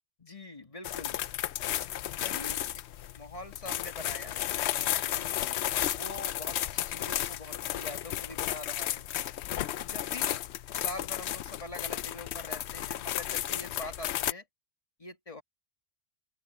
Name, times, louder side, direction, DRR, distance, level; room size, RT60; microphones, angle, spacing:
voice 1, 0.2-1.2 2.1-2.6 3.1-4.4 4.7-5.3 5.9-9.1 9.7-10.4 10.7-14.5 15.0-15.4, left 2 dB, 30° left, 1.9 m, -44 dB
sound 1, 0.8-14.3, left 12 dB, 70° left, 0.8 m, -33 dB
open air
omnidirectional pair, 1.2 m